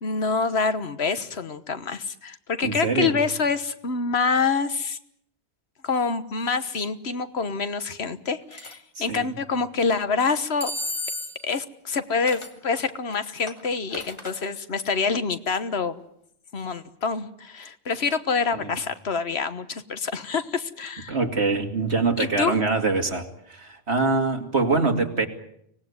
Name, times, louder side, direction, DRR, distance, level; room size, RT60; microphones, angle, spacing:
voice 1, 0.0-5.0 5.8-10.7 11.4-16.0 16.5-21.2 22.2-22.6, left 5 dB, 75° left, 12 dB, 1.5 m, -26 dB
voice 2, 2.6-3.2 9.0-9.3 18.5-18.7 21.1-25.3, right 3 dB, 80° right, 5 dB, 2.8 m, -24 dB
sound 1, 8.5-8.8 10.6-11.5 12.3-12.6 13.1-14.4, left 1 dB, 25° left, 2.0 m, -33 dB
25.0 x 18.5 x 9.6 m, 0.74 s
omnidirectional pair, 1.1 m